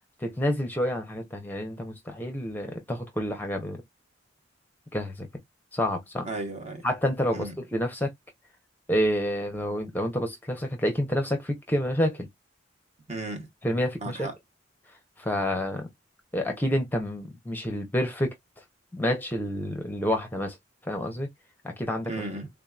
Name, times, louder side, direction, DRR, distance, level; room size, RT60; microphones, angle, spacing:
voice 1, 0.2-3.8 4.9-5.3 5.7-6.3 6.8-8.1 8.9-12.3 13.6-14.3 15.2-15.9 16.3-18.3 18.9-20.6 20.8-21.3 21.6-22.1, equal, 10° left, 0.7 m, -28 dB
voice 2, 6.2-6.9 7.3-7.5 13.1-13.5 14.0-14.4 22.0-22.5, right 2 dB, 35° right, 1.1 m, -35 dB
3.6 x 2.8 x 2.3 m
head